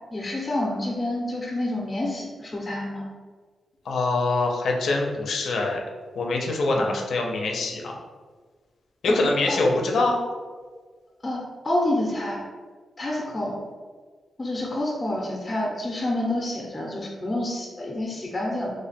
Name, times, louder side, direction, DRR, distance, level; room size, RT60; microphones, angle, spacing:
voice 1, 0.1-3.1 6.8-6.9 9.1-9.2 9.5-9.6 11.2-12.4 13.0-13.6 14.4-18.7, left 1 dB, 25° left, -2 dB, 0.5 m, -28 dB
voice 2, 3.9-5.8 6.2-7.9 9.0-10.2, left 2 dB, 75° left, 0 dB, 0.5 m, -24 dB
3.1 x 2.2 x 4.1 m, 1.5 s
wide cardioid pair, 125°, 0 cm